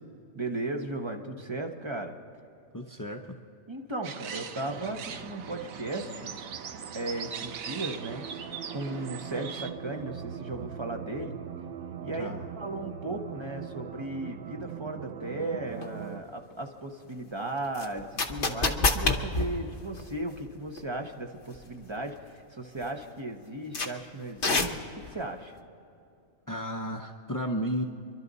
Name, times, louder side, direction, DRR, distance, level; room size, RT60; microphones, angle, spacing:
voice 1, 0.3-2.1 3.7-6.3 6.9-8.2 8.7-11.4 12.0-25.5, right 2 dB, 25° right, 3 dB, 1.0 m, -36 dB
voice 2, 2.7-3.2 12.1-12.4 26.5-27.8, equal, 25° left, 1 dB, 0.4 m, -33 dB
sound 1, 4.0-9.7, right 7 dB, 85° right, 1.2 m, -40 dB
sound 2, 4.7-16.2, right 8 dB, 55° right, 0.7 m, -42 dB
sound 3, 15.8-15.9 17.7-20.5 20.8-20.9 21.5-21.8 22.2-22.3 22.8-22.9 23.7-23.9 24.4-25.1, left 3 dB, 45° left, 1.1 m, -27 dB
26.0 x 12.0 x 4.1 m, 2.6 s
omnidirectional pair, 1.4 m